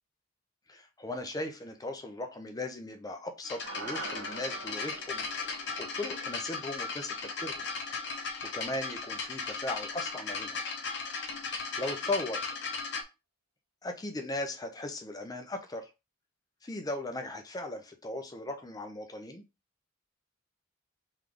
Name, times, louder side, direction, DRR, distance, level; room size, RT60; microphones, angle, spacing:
voice 1, 0.7-5.2 5.8-7.7 8.5-10.6 11.3-11.5 11.8-12.6 13.8-15.9 16.6-19.4, left 2 dB, 20° left, 0.6 m, -38 dB
sound 1, 3.4-13.0, left 4 dB, 60° left, 0.9 m, -37 dB
sound 2, 3.6-8.1, right 3 dB, 75° right, 0.9 m, -46 dB
3.5 x 3.2 x 3.8 m
head